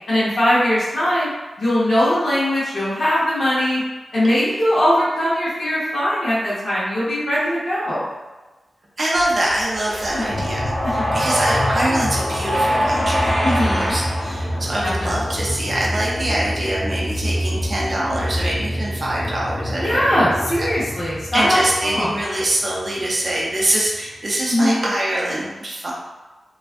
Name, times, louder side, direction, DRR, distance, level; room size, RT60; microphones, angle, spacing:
voice 1, 0.1-1.3 1.6-3.8 4.1-8.1 9.9-10.4 10.8-10.9 13.4-14.0 15.0-15.1 19.8-22.1 24.5-24.8, equal, 60° left, -10 dB, 0.8 m, -20 dB
voice 2, 9.0-20.7 21.3-25.9, right 1 dB, 40° right, -5 dB, 0.5 m, -24 dB
sound 1, 9.1-15.3, equal, 20° left, 0.8 m, -24 dB
sound 2, 10.3-24.0, equal, 85° left, 0.4 m, -27 dB
2.3 x 2.3 x 2.4 m, 1.2 s
wide cardioid pair, 145°, 0 cm